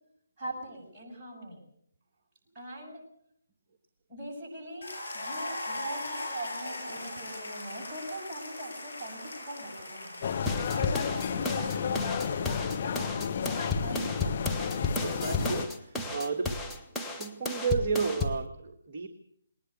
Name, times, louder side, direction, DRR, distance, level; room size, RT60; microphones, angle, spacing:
voice 1, 0.4-1.6 2.5-3.0 4.1-14.4, right 1 dB, 15° right, -3 dB, 7.4 m, -42 dB
sound 1, 4.8-12.9, left 2 dB, 70° left, 8.0 m, -40 dB
sound 2, 10.2-15.7, left 7 dB, 35° left, 1.2 m, -32 dB
sound 3, 10.5-18.4, left 3 dB, 5° left, 1.2 m, -33 dB
voice 2, 15.0-16.6 17.1-19.1, right 5 dB, 35° right, 2 dB, 1.4 m, -32 dB
20.0 x 19.5 x 6.7 m, 0.72 s
figure-of-eight pair, 145°, 0 cm